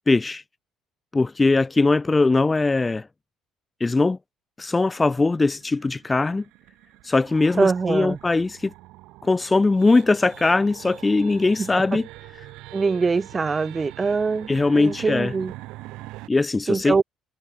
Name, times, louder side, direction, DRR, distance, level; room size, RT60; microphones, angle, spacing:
voice 1, 0.1-0.4 1.1-3.1 3.8-4.2 4.6-6.4 7.0-8.7 9.2-12.0 14.5-15.3 16.3-17.0, left 3 dB, 20° left, 0.3 m, -20 dB
sound 1, 4.7-16.3, right 19 dB, 65° right, 3.5 m, -43 dB
voice 2, 7.6-8.2 11.6-12.0 12.7-15.5 16.7-17.0, right 4 dB, 30° right, 1.2 m, -23 dB
figure-of-eight pair, 50°, 0 cm